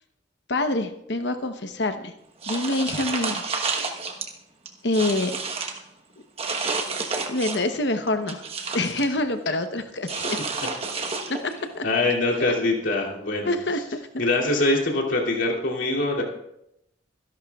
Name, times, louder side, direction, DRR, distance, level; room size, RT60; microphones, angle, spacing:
voice 1, 0.5-2.1 2.5-3.4 4.8-5.3 7.3-8.4 8.7-10.4 11.4-11.8 12.4-12.5 13.4-13.8, left 2 dB, 65° left, 8 dB, 0.9 m, -26 dB
sound 1, 2.4-4.3 4.7-5.8 6.4-7.7 8.1-9.1 10.1-11.6, right 4 dB, 30° right, 1.1 m, -30 dB
voice 2, 11.8-13.5 14.2-16.2, left 2 dB, 85° left, -3 dB, 2.7 m, -23 dB
25.0 x 11.0 x 2.4 m, 0.81 s
head